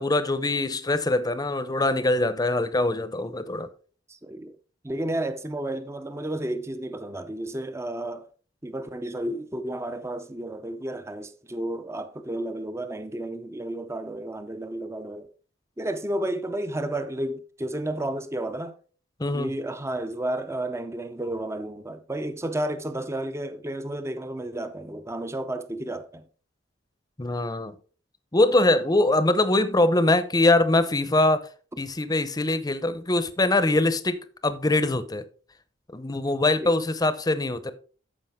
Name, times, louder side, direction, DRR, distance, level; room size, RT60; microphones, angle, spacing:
voice 1, 0.0-3.7 19.2-19.5 27.2-27.7 28.3-31.5 31.8-34.2 34.4-35.2 35.9-37.7, left 2 dB, 20° left, 0.7 m, -23 dB
voice 2, 4.1-4.5 4.8-8.3 8.6-15.3 15.8-18.7 19.3-26.2 36.6-36.7, right 1 dB, 15° right, 0.6 m, -32 dB
13.5 x 5.0 x 3.6 m
head